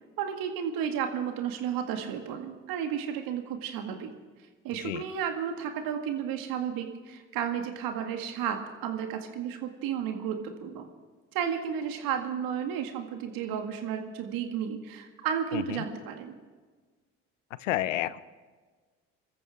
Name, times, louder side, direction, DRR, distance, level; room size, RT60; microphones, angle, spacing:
voice 1, 0.2-4.1 4.6-10.9 11.3-16.3, right 8 dB, 70° right, 5 dB, 2.1 m, -33 dB
voice 2, 15.5-15.8 17.6-18.2, left 14 dB, 85° left, 18 dB, 0.6 m, -30 dB
25.5 x 14.0 x 3.7 m, 1.4 s
hypercardioid pair, 55°, 37 cm